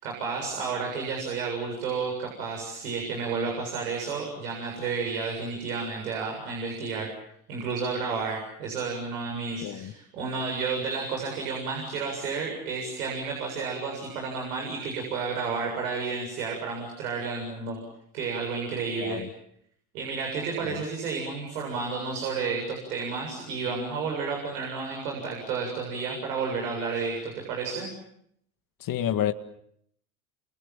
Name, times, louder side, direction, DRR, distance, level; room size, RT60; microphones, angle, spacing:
voice 1, 0.0-7.1 7.5-17.8 18.1-19.2 19.9-27.9, right 4 dB, 85° right, 7.6 m, -31 dB
voice 2, 9.6-9.9 19.0-19.3 20.6-20.8 28.8-29.3, left 11 dB, 50° left, 1.9 m, -29 dB
29.5 x 27.0 x 7.4 m
hypercardioid pair, 80°, 44 cm